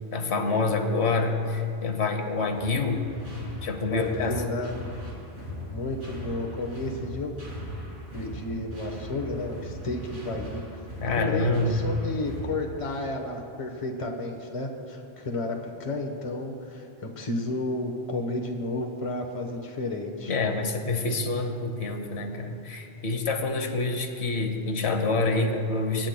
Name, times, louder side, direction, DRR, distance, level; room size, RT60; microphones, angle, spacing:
voice 1, 0.1-3.1 3.6-4.4 11.0-11.8 20.3-26.1, left 3 dB, 80° left, 4 dB, 1.2 m, -27 dB
sound 1, 2.6-13.3, equal, 75° right, 3.2 m, -39 dB
voice 2, 3.8-4.7 5.7-7.4 8.1-10.6 11.2-20.3, left 2 dB, 30° left, 1 dB, 1.0 m, -32 dB
24.0 x 10.5 x 2.2 m, 2.5 s
omnidirectional pair, 1.1 m